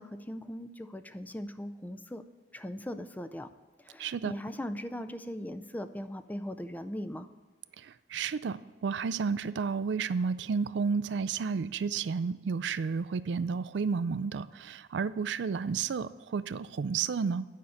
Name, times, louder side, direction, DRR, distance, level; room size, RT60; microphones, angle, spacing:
voice 1, 0.0-2.2 2.5-3.5 3.8-7.3, equal, 10° left, 10 dB, 0.4 m, -39 dB
voice 2, 4.0-4.3 8.1-17.5, right 5 dB, 75° right, 16 dB, 0.4 m, -31 dB
9.5 x 5.6 x 6.4 m, 1.4 s
head